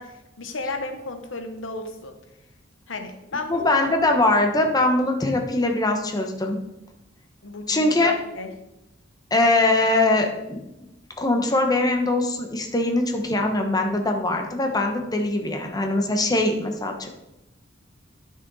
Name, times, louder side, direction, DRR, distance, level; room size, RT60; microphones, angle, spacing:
voice 1, 0.0-2.1 2.9-3.9 7.4-8.5, left 3 dB, 85° left, 7 dB, 1.0 m, -34 dB
voice 2, 3.5-6.6 7.7-8.1 9.3-10.6 11.2-17.1, left 2 dB, 20° left, 3 dB, 1.0 m, -22 dB
10.5 x 6.3 x 4.0 m, 0.92 s
head